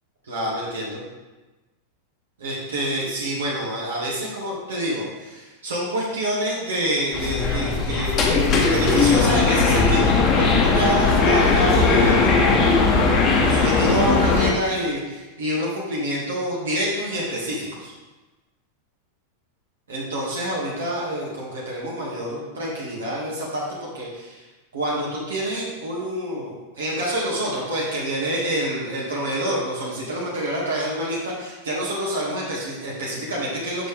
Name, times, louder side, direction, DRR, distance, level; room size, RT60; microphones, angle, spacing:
voice 1, 0.3-1.0 2.4-17.9 19.9-24.4 24.7-33.9, equal, 65° right, -5 dB, 2.1 m, -27 dB
sound 1, 7.1-14.5, left 4 dB, 30° left, 1.2 m, -18 dB
7.7 x 6.5 x 3.5 m, 1.1 s
figure-of-eight pair, 90°, 0 cm